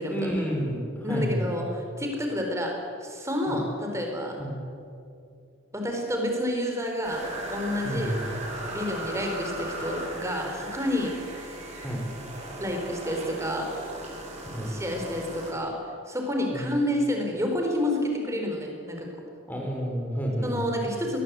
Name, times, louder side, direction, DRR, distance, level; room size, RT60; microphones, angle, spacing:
voice 1, 0.1-1.4 3.5-3.6 4.4-4.6 7.8-8.3 11.8-12.0 14.5-14.7 16.5-16.6 19.5-20.5, equal, 10° left, -1 dB, 5.2 m, -30 dB
voice 2, 1.0-2.7 3.0-4.4 5.7-7.2 7.5-8.1 8.7-11.2 12.6-13.7 14.7-15.8 16.1-19.1 20.4-21.2, left 1 dB, 15° right, 2 dB, 4.1 m, -29 dB
sound 1, 7.0-15.5, right 1 dB, 35° right, 7.1 m, -37 dB
22.0 x 20.0 x 8.2 m, 2.5 s
head